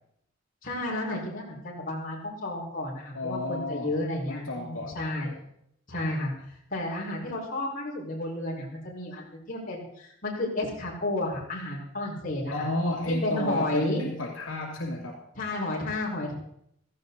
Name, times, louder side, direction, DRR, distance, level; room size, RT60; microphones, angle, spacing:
voice 1, 0.6-5.3 5.9-12.7 13.2-14.0 15.4-16.3, left 1 dB, 45° left, -4 dB, 5.4 m, -32 dB
voice 2, 3.1-3.9 4.3-5.0 5.2-5.3 12.5-15.2, left 1 dB, 80° left, 0 dB, 2.5 m, -32 dB
16.5 x 15.0 x 4.2 m, 0.72 s
head